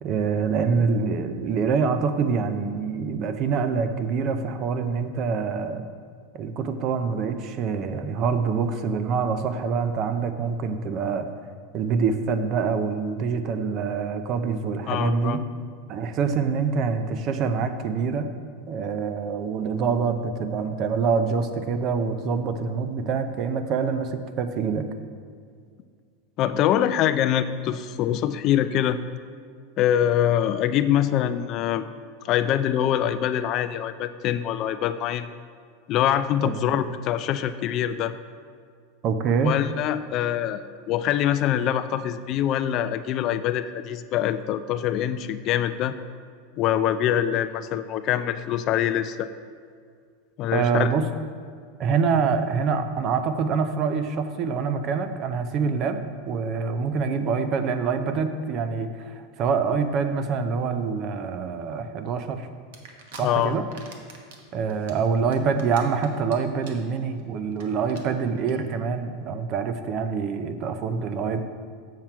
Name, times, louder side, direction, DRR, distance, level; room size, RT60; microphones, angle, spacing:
voice 1, 0.0-5.8 6.3-11.3 11.7-15.4 15.9-18.3 18.7-24.9 36.4-36.5 39.0-39.6 50.5-51.1 51.8-56.0 56.3-62.5 63.2-63.6 64.5-71.4, right 5 dB, 35° right, 8 dB, 0.5 m, -25 dB
voice 2, 14.9-15.4 26.4-29.0 29.8-31.8 32.2-35.3 35.9-38.1 39.4-45.9 46.6-49.3 50.4-50.9 63.2-63.5, left 10 dB, 35° left, 12 dB, 0.3 m, -24 dB
sound 1, 62.7-63.2 63.6-64.4 64.7-66.3 66.6-66.9 67.2-67.3 67.5-67.6 67.9-68.0 68.4-68.5, right 6 dB, 75° right, 1.2 m, -44 dB
7.4 x 7.3 x 4.5 m, 2.1 s
supercardioid pair, 155°, 0 cm